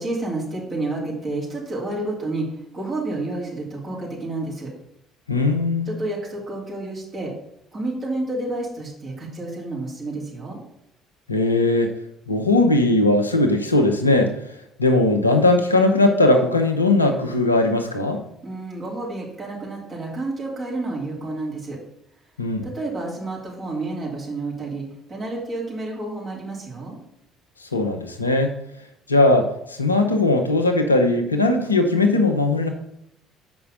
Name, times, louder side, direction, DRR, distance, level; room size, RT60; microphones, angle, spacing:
voice 1, 0.0-2.5 2.7-4.7 5.9-7.3 7.7-10.6 18.4-21.8 22.6-27.0, right 2 dB, 35° right, -4 dB, 3.2 m, -30 dB
voice 2, 5.3-5.9 11.3-11.9 12.3-14.3 14.8-18.2 22.4-22.6 27.7-28.5 29.1-32.7, left 2 dB, 90° left, 4 dB, 0.7 m, -19 dB
6.9 x 5.4 x 5.1 m, 0.78 s
figure-of-eight pair, 55°, 0 cm